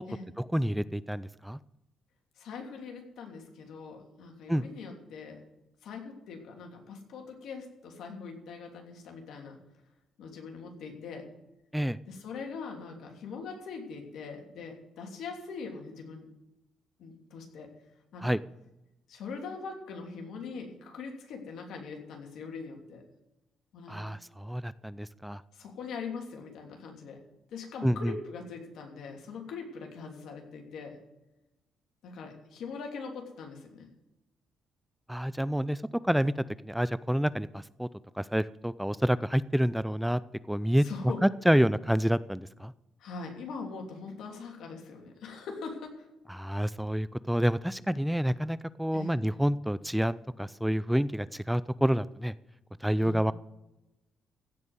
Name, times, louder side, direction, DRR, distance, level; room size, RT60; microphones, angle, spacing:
voice 1, 0.4-1.6 4.5-4.6 11.7-12.0 18.2-18.4 23.9-25.4 27.8-28.1 35.1-36.3 36.6-37.9 38.2-40.2 40.5-40.8 41.2-42.7 46.3-52.3 52.8-53.3, equal, 5° right, 17 dB, 0.4 m, -28 dB
voice 2, 2.4-5.4 5.8-9.6 10.2-11.2 12.1-16.3 17.0-17.7 18.1-18.3 19.1-23.0 23.7-24.0 25.5-27.2 27.5-31.0 32.0-33.9 40.8-41.2 43.0-46.1 48.9-49.1 53.0-53.3, left 5 dB, 75° left, 2 dB, 3.0 m, -42 dB
16.0 x 5.3 x 9.6 m, 0.95 s
cardioid pair, 90°, 0 cm